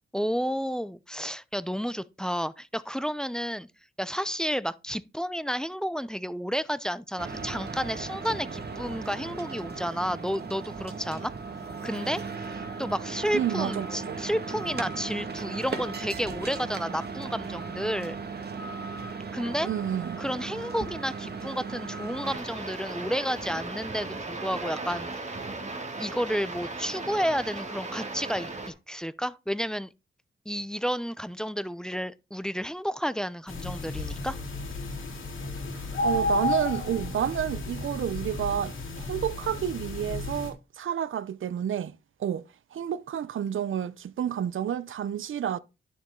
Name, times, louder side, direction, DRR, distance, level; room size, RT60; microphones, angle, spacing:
voice 1, 0.1-3.7 4.0-11.3 11.8-12.2 12.8-18.2 19.3-19.7 20.2-25.4 26.0-29.9 30.5-34.4, equal, 5° left, 0.6 m, -31 dB
sound 1, 7.2-22.4, right 4 dB, 55° right, 1.9 m, -37 dB
voice 2, 13.3-14.2 19.6-20.2 35.7-42.4 42.7-45.6, right 9 dB, 80° right, 0.6 m, -30 dB
sound 2, 22.2-28.7, right 3 dB, 35° right, 2.7 m, -37 dB
sound 3, 33.5-40.5, left 2 dB, 90° left, 3.4 m, -32 dB
11.5 x 7.0 x 3.8 m
wide cardioid pair, 90°, 20 cm